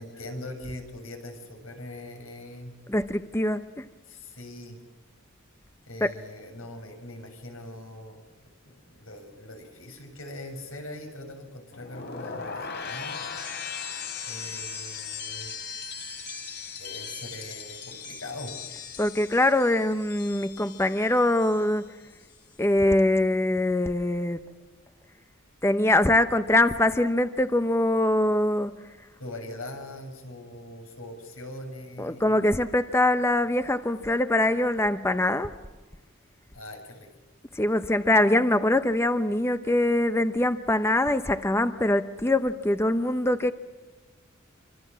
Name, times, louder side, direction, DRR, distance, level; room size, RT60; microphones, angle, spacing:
voice 1, 0.0-2.7 4.1-4.8 5.9-8.2 8.6-13.3 14.3-15.5 16.8-18.6 29.2-32.3 36.5-37.1, left 1 dB, 80° left, 7.3 m, -41 dB
voice 2, 2.9-3.8 6.0-6.1 19.0-21.9 22.6-24.4 25.6-28.8 32.0-35.6 37.5-43.5, left 1 dB, 15° left, 0.8 m, -23 dB
sound 1, 11.7-21.8 22.1-22.5, left 6 dB, 55° left, 3.6 m, -38 dB
27.0 x 25.5 x 7.5 m
head